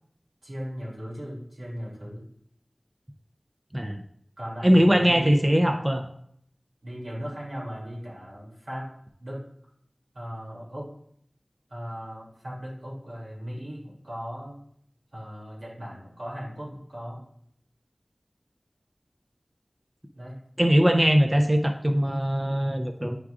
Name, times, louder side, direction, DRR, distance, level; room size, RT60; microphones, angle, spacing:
voice 1, 0.4-2.2 4.4-5.7 6.8-8.9 9.2-9.4 10.1-10.9 11.7-14.6 15.1-17.2 20.1-20.3, equal, 90° right, -5 dB, 2.7 m, -37 dB
voice 2, 4.6-6.1 20.6-23.2, equal, 20° right, 5 dB, 0.5 m, -21 dB
9.7 x 4.7 x 2.5 m, 0.68 s
wide cardioid pair, 45°, 0 cm